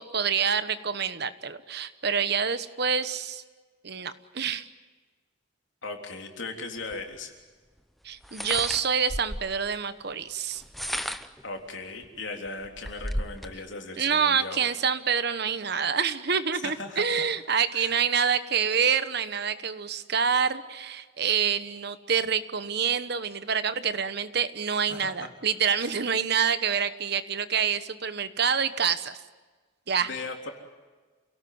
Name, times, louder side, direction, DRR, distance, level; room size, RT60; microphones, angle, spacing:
voice 1, 0.0-3.4 3.8-4.7 8.0-10.6 14.0-29.2 29.9-30.1, right 7 dB, 55° right, 12 dB, 1.1 m, -27 dB
voice 2, 5.8-7.3 11.4-14.7 16.5-17.2 17.7-17.9 24.9-25.3 25.7-25.9 30.0-30.5, left 3 dB, 70° left, 2 dB, 3.6 m, -38 dB
sound 1, 6.9-7.0 8.2-9.6 10.5-11.4 12.0-12.1 12.5-13.5, equal, ahead, 0.8 m, -33 dB
28.5 x 18.0 x 9.5 m, 1.4 s
head